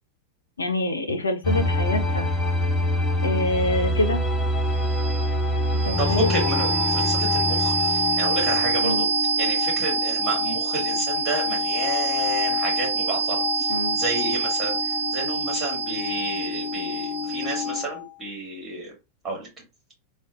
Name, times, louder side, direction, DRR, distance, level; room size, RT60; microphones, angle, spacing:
voice 1, 0.6-2.3 3.2-4.2 5.7-6.3 8.8-9.1 13.7-14.0, left 2 dB, 75° left, 0.5 m, -26 dB
sound 1, 1.4-8.8, left 1 dB, 20° left, 1.0 m, -25 dB
sound 2, 4.1-18.0, right 1 dB, 65° right, 1.1 m, -25 dB
voice 2, 6.0-9.1 9.4-18.9 19.2-19.5, right 2 dB, 20° right, 1.8 m, -31 dB
3.7 x 2.2 x 2.4 m
figure-of-eight pair, 90°, 0 cm